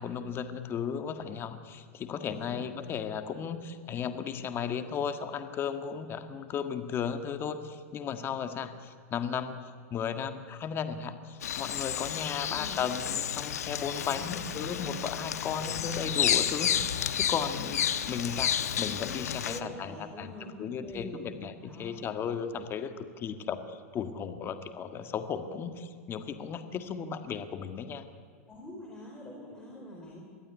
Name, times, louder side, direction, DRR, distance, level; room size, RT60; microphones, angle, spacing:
voice 1, 0.0-9.6 9.9-20.3 20.6-28.0, left 7 dB, 30° left, 9 dB, 1.7 m, -35 dB
voice 2, 2.3-2.6 12.5-12.8 13.8-14.4 15.6-16.0 19.5-21.3 21.6-22.0 28.5-30.2, left 1 dB, 10° left, -3 dB, 4.4 m, -45 dB
Bird vocalization bird call bird song, 11.4-19.6, left 9 dB, 90° left, 1.3 m, -31 dB
22.5 x 14.5 x 9.7 m, 2.1 s
hypercardioid pair, 125°, 8 cm